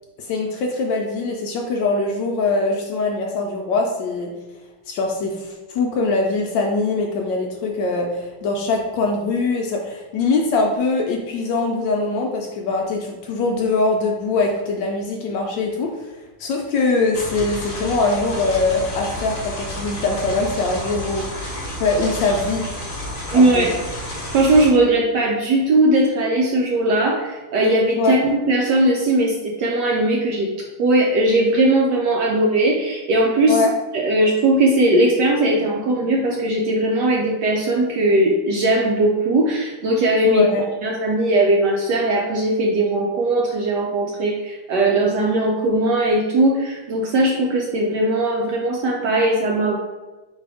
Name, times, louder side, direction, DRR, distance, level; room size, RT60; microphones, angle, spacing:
voice 1, 0.2-4.3 4.9-15.9 16.4-21.3 21.8-22.7 23.3-23.7 28.0-28.1 33.5-33.7 40.2-40.6, left 3 dB, 75° left, 1 dB, 1.1 m, -22 dB
sound 1, 17.1-24.7, left 1 dB, 40° left, 0.5 m, -31 dB
voice 2, 23.3-23.8 24.0-33.6 33.9-40.4 40.8-49.8, right 1 dB, 75° right, -1 dB, 1.0 m, -19 dB
4.2 x 2.7 x 4.7 m, 1.2 s
omnidirectional pair, 2.3 m